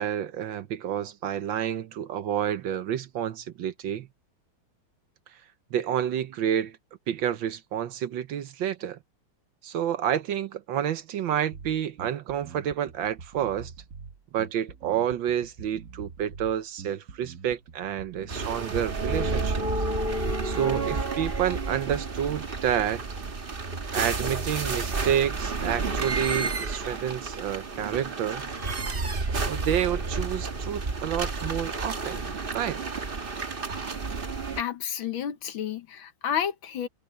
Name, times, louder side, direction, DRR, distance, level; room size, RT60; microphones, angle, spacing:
voice 1, 0.0-4.1 5.7-6.8 7.1-9.0 9.6-13.7 14.3-19.7 20.4-23.0 23.9-28.4 29.3-32.2 32.5-32.8, right 9 dB, 70° right, 1.4 m, -29 dB
Bass guitar, 11.5-21.1, right 5 dB, 50° right, 1.1 m, -45 dB
sound 1, 18.3-34.6, right 3 dB, 30° right, 1.3 m, -31 dB
voice 2, 34.6-36.9, left 9 dB, 70° left, 1.8 m, -31 dB
omnidirectional pair, 2.4 m